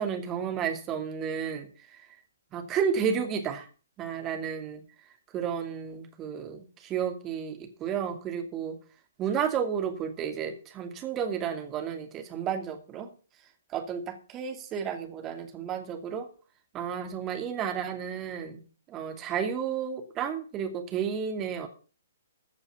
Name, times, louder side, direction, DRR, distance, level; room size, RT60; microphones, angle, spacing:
voice 1, 0.0-1.7 2.5-3.7 4.0-4.8 5.3-8.8 9.2-13.1 13.7-16.3 16.7-18.6 18.9-21.7, right 7 dB, 20° right, 5 dB, 2.6 m, -32 dB
14.5 x 6.8 x 7.1 m, 0.37 s
figure-of-eight pair, 125°, 0 cm